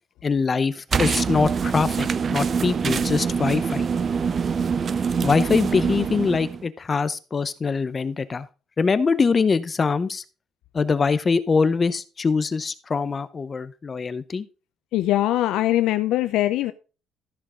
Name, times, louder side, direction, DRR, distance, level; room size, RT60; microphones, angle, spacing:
voice 1, 0.2-3.9 5.2-8.5 8.8-10.2 10.7-14.4, left 5 dB, 25° left, 0.7 m, -23 dB
sound 1, 0.9-5.9, right 1 dB, 10° right, 1.7 m, -42 dB
sound 2, 0.9-6.7, right 6 dB, 35° right, 0.4 m, -25 dB
voice 2, 14.9-16.7, left 14 dB, 85° left, 0.6 m, -21 dB
13.5 x 6.5 x 3.7 m
cardioid pair, 155°, 0 cm